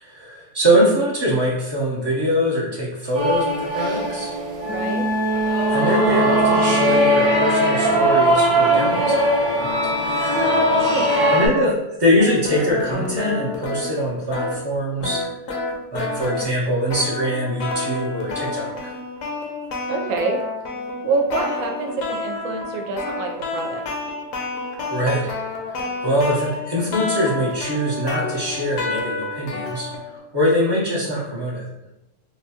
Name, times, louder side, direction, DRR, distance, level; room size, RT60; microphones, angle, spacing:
voice 1, 0.0-4.3 5.7-9.9 11.3-15.2 15.9-18.9 24.9-25.3 25.7-31.6, equal, 40° right, -7 dB, 0.3 m, -23 dB
sound 1, 3.1-11.5, right 1 dB, 55° right, 1.0 m, -19 dB
voice 2, 4.7-5.1 10.7-11.2 19.9-20.4 21.0-23.8, right 3 dB, 90° right, 3 dB, 1.0 m, -26 dB
sound 2, 12.2-30.2, left 3 dB, 80° left, 1.0 m, -29 dB
3.8 x 2.2 x 2.8 m, 0.91 s
omnidirectional pair, 1.3 m